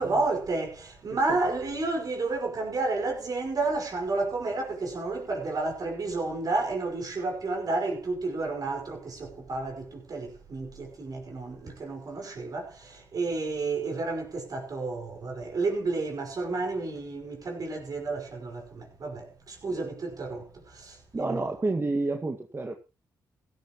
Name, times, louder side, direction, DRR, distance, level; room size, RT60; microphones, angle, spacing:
voice 1, 0.0-21.4, right 3 dB, 50° right, 5.3 m, -31 dB
voice 2, 21.1-22.7, right 2 dB, 30° right, 1.9 m, -30 dB
16.0 x 13.0 x 3.1 m
supercardioid pair, 60°, 8 cm